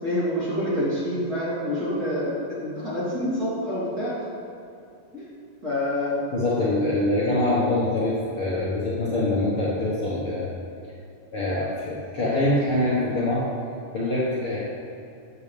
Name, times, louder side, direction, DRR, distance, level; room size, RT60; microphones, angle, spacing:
voice 1, 0.0-4.1 5.1-5.2 5.6-6.2, left 1 dB, 30° right, -10 dB, 2.8 m, -27 dB
voice 2, 6.3-10.4 11.3-13.5 13.9-14.6, left 1 dB, 50° left, -8 dB, 1.9 m, -24 dB
14.0 x 8.2 x 3.4 m, 2.5 s
omnidirectional pair, 3.9 m